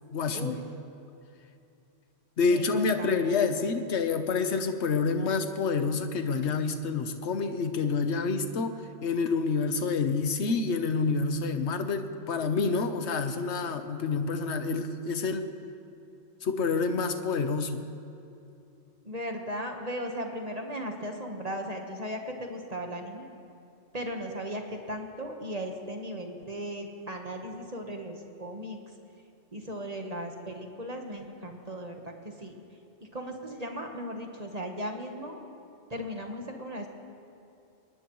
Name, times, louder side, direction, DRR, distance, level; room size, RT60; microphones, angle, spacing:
voice 1, 0.1-0.6 2.4-8.7 9.0-15.5 16.4-17.8, left 4 dB, 65° left, 8 dB, 1.2 m, -28 dB
voice 2, 2.5-3.4 19.0-23.3 23.9-28.8 29.5-32.5 33.1-35.4 35.9-36.9, equal, 30° right, 3 dB, 1.3 m, -37 dB
23.0 x 19.5 x 3.1 m, 2.7 s
omnidirectional pair, 1.3 m